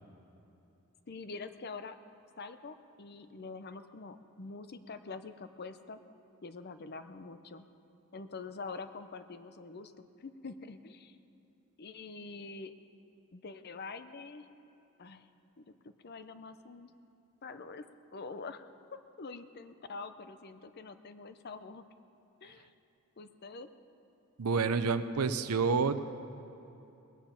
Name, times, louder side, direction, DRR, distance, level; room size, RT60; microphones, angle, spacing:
voice 1, 1.1-2.0 2.4-6.0 6.4-7.6 8.1-11.2 11.8-12.7 13.3-14.5 15.0-15.3 15.6-16.9 17.4-17.9 18.1-21.8 22.4-22.7 23.2-23.7, left 4 dB, 45° left, 11 dB, 0.6 m, -45 dB
voice 2, 24.4-26.0, right 5 dB, 90° right, 11 dB, 0.6 m, -28 dB
20.0 x 9.1 x 5.8 m, 2.8 s
head